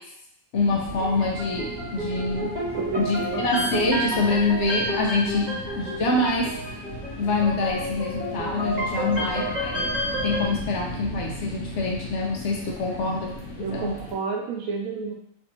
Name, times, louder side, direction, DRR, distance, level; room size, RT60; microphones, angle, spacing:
sound 1, 0.5-14.1, equal, 90° left, 1.2 m, -37 dB
voice 1, 0.5-2.5 3.0-6.6 7.2-10.0 10.2-13.9, left 2 dB, 65° left, -1 dB, 0.9 m, -25 dB
sound 2, 0.9-10.4, equal, 35° right, 1.1 m, -31 dB
voice 2, 2.8-3.5 5.5-5.6 9.0-9.5 12.9-13.2 13.6-15.1, right 5 dB, 90° right, 1 dB, 1.0 m, -31 dB
3.4 x 2.6 x 2.9 m, 0.73 s
omnidirectional pair, 1.4 m